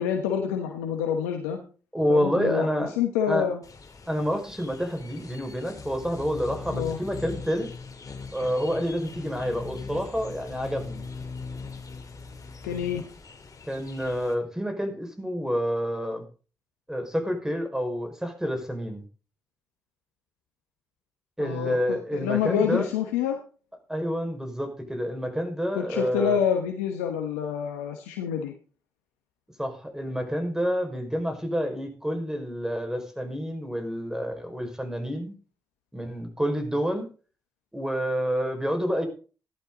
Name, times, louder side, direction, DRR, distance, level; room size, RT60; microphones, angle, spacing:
voice 1, 0.0-1.6 2.1-2.7 3.0-3.6 6.7-7.0 12.6-13.0 21.4-23.4 25.7-28.5, left 8 dB, 90° left, 4 dB, 1.2 m, -27 dB
voice 2, 1.9-2.9 3.2-3.5 4.1-7.7 8.3-11.0 13.7-16.2 16.9-19.0 21.4-22.9 23.9-26.4 29.6-35.4 35.9-37.1 37.7-39.1, equal, 5° right, 5 dB, 5.5 m, -28 dB
sound 1, 3.6-14.3, left 4 dB, 45° left, 3.0 m, -40 dB
15.0 x 11.5 x 4.0 m, 0.38 s
hypercardioid pair, 40°, 8 cm